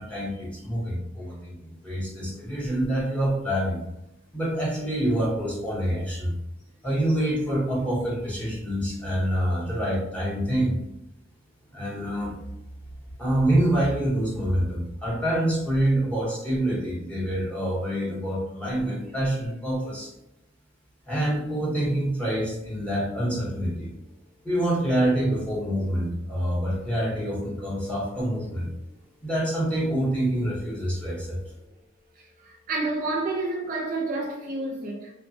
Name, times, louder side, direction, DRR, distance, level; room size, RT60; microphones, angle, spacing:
voice 1, 0.0-3.8 4.3-6.4 6.8-10.8 11.7-12.3 13.2-20.1 21.1-23.9 24.4-28.7 29.2-31.4, right 1 dB, 5° left, 0.7 m, -26 dB
voice 2, 32.4-35.1, right 2 dB, 40° right, 0.4 m, -29 dB
3.1 x 2.1 x 2.5 m
head